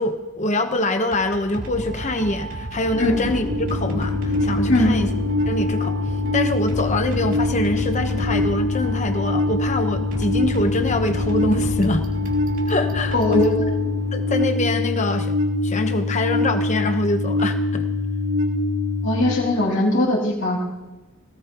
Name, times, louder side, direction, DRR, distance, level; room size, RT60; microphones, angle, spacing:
voice 1, 0.0-5.1 5.5-6.0 6.3-12.0 12.7-13.6 14.1-15.4 15.6-17.9, left 1 dB, 30° left, 6 dB, 1.1 m, -24 dB
sound 1, 1.1-14.2, equal, 60° right, 3.1 m, -33 dB
sound 2, 2.9-14.5, left 2 dB, 70° left, 3.6 m, -38 dB
sound 3, 3.5-19.3, left 2 dB, 80° right, 2.1 m, -24 dB
voice 2, 13.1-13.7 19.0-20.6, left 1 dB, 55° left, -4 dB, 3.0 m, -20 dB
20.0 x 18.0 x 3.0 m, 1.1 s
head